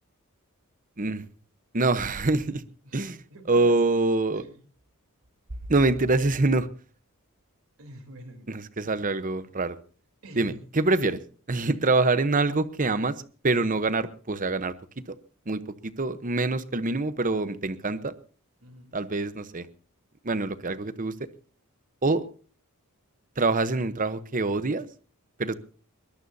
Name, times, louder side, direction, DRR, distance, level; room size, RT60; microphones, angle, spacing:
voice 1, 1.7-2.6 2.9-3.2 3.5-4.4 5.7-6.7 8.5-9.8 10.4-11.2 11.5-14.7 15.1-15.2 15.5-18.1 18.9-19.7 20.2-21.1 22.0-22.2 23.4-24.9 25.4-25.6, right 3 dB, 35° right, 13 dB, 0.9 m, -25 dB
voice 2, 3.3-3.7 4.3-4.6 7.8-8.5 10.2-10.6 18.6-19.0, right 1 dB, 70° right, 5 dB, 3.5 m, -46 dB
22.0 x 20.5 x 2.8 m, 0.39 s
head